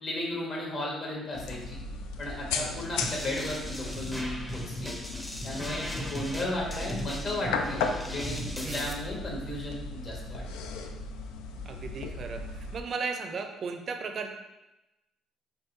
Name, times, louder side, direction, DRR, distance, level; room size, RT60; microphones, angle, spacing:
voice 1, 0.0-1.8 2.2-4.9 5.4-10.5, left 1 dB, 45° left, -3 dB, 1.3 m, -35 dB
sound 1, 1.3-12.8, left 4 dB, 90° left, 0.3 m, -36 dB
sound 2, 3.0-8.9, equal, 10° left, 0.6 m, -37 dB
voice 2, 11.7-14.3, right 5 dB, 50° right, 5 dB, 0.5 m, -36 dB
4.5 x 2.6 x 3.1 m, 0.99 s
supercardioid pair, 80°, 0 cm